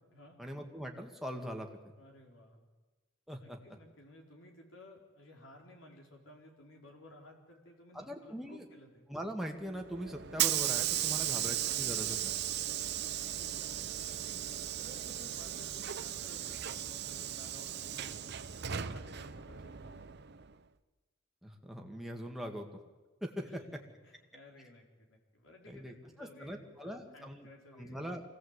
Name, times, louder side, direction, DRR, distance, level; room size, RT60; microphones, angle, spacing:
voice 1, 0.4-1.9 3.3-3.6 7.9-8.6 9.1-12.4 21.4-22.7 23.2-23.5 25.7-27.5 27.8-28.2, equal, ahead, 1 dB, 2.1 m, -41 dB
voice 2, 2.0-2.7 3.4-9.0 11.1-11.4 13.2-14.4 14.7-18.3 18.5-20.2 23.4-28.0, left 1 dB, 70° left, 1 dB, 4.3 m, -56 dB
Hiss / Sliding door, 9.7-20.5, right 11 dB, 55° right, 0.8 m, -36 dB
25.0 x 17.5 x 8.3 m, 1.2 s
head